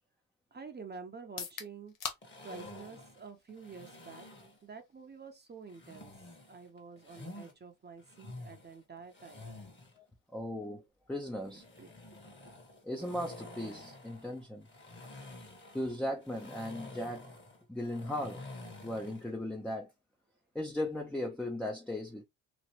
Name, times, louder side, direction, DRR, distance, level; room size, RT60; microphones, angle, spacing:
voice 1, 0.5-1.9 2.4-4.3 4.6-6.1 6.5-9.6 11.8-11.9 12.4-12.5, right 5 dB, 30° right, 0.8 m, -48 dB
sound 1, 1.2-15.1, left 7 dB, 60° left, 0.9 m, -52 dB
sound 2, 2.2-4.6 5.7-7.5 8.0-10.0 11.4-19.3, left 2 dB, 30° left, 1.4 m, -50 dB
voice 2, 10.3-11.6 12.8-14.7 15.7-17.3 17.7-18.5 18.8-19.9 20.5-22.2, left 1 dB, 5° left, 0.6 m, -37 dB
3.1 x 2.5 x 2.8 m
supercardioid pair, 75°, 36 cm